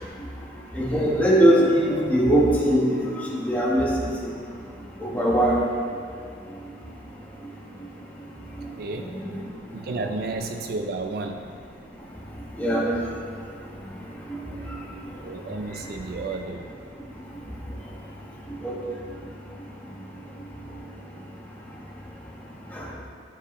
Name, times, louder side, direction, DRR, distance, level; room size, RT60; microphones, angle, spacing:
voice 1, 0.7-4.3 5.0-5.6 7.4-7.5 8.6-8.7 9.0-9.4 12.6-12.9 14.3-14.9 15.8-15.9 17.3-17.4 18.5-18.8 22.7-22.9, right 1 dB, 10° left, -5 dB, 1.2 m, -22 dB
voice 2, 8.8-9.2 9.7-11.4 15.2-16.7, right 3 dB, 50° right, 5 dB, 0.4 m, -32 dB
13.5 x 4.7 x 3.1 m, 2.2 s
head